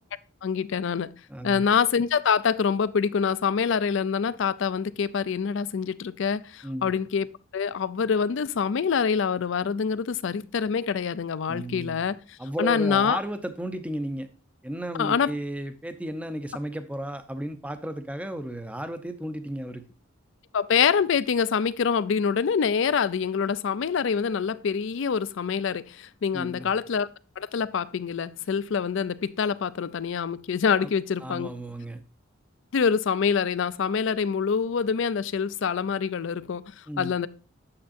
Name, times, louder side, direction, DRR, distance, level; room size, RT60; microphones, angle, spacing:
voice 1, 0.4-1.1 1.4-7.3 7.5-12.2 12.6-13.2 15.0-15.3 20.5-27.1 27.4-31.5 32.7-37.3, left 6 dB, 60° left, 0.4 m, -25 dB
voice 2, 1.3-1.6 6.6-6.9 11.5-12.0 12.4-14.3 14.6-19.8 26.3-26.7 30.8-30.9 31.2-32.0 36.9-37.2, right 1 dB, 5° right, 0.5 m, -34 dB
8.6 x 7.2 x 2.5 m
head